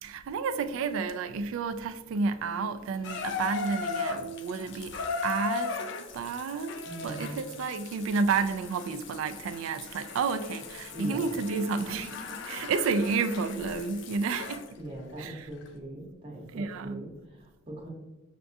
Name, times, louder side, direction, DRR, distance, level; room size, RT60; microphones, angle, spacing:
voice 1, 0.0-5.0 5.2-5.8 6.1-6.8 7.0-12.1 12.5-14.6 15.2-15.3 16.5-17.1, right 4 dB, 90° right, 0.3 m, -30 dB
Water tap faucet / Bathtub (filling or washing), 3.0-14.7 15.6-15.7, left 5 dB, 60° left, 0.4 m, -38 dB
voice 2, 6.8-7.4 10.9-12.0 12.3-12.6 14.2-17.9, right 1 dB, 25° right, 0.8 m, -42 dB
5.8 x 2.3 x 2.6 m
head